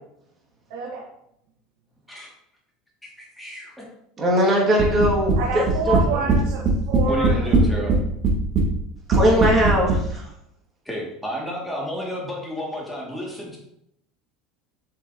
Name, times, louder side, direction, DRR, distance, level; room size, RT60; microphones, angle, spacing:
voice 1, 0.7-1.0 5.4-7.5 7.9-8.0, right 3 dB, 70° right, -3 dB, 1.7 m, -28 dB
voice 2, 3.2-3.8 5.9-6.0 7.1-7.9 10.8-13.6, equal, ahead, -4 dB, 2.5 m, -31 dB
voice 3, 4.2-6.0 9.1-10.3, equal, 30° right, -2 dB, 2.5 m, -20 dB
sound 1, 4.8-5.4 5.7-6.4 6.7-8.0 8.2-8.7 9.1-10.0, right 3 dB, 45° right, 1.9 m, -18 dB
8.3 x 6.0 x 3.0 m, 0.76 s
supercardioid pair, 130°, 0 cm